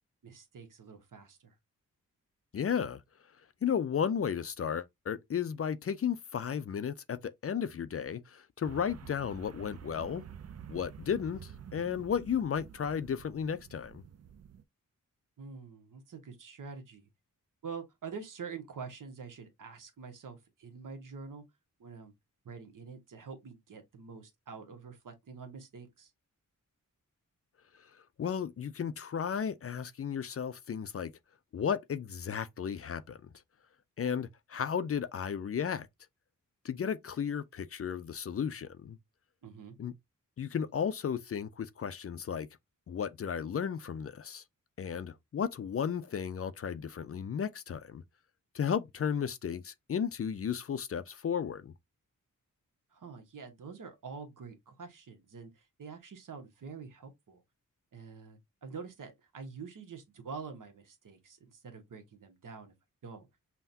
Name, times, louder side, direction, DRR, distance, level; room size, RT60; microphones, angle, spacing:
voice 1, 0.2-1.5 15.4-17.1 17.6-21.4 21.8-22.1 22.4-26.1 39.4-39.8 52.9-57.4 57.9-62.7 63.0-63.3, right 5 dB, 70° right, 1.1 m, -46 dB
voice 2, 2.5-3.0 3.6-10.2 10.7-14.0 28.2-31.1 31.5-33.3 34.0-35.9 36.6-39.0 39.8-39.9 40.4-42.5 42.9-44.4 44.8-48.0 48.5-51.7, left 7 dB, 45° left, 0.4 m, -34 dB
sound 1, 8.6-14.6, right 8 dB, 50° right, 0.4 m, -49 dB
5.6 x 2.2 x 2.7 m
wide cardioid pair, 95°, 33 cm